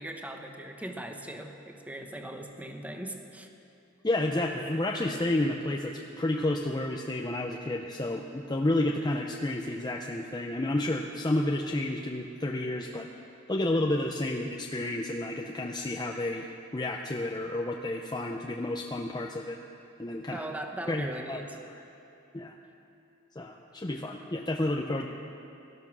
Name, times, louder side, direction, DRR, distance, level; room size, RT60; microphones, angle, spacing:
voice 1, 0.0-3.5 20.3-21.6, right 1 dB, 10° right, 4 dB, 1.1 m, -39 dB
voice 2, 4.0-13.1 13.5-19.6 20.0-20.4 20.9-21.4 22.3-22.5 23.4-25.1, left 1 dB, 20° left, 1 dB, 0.7 m, -30 dB
17.5 x 12.5 x 6.2 m, 2.8 s
head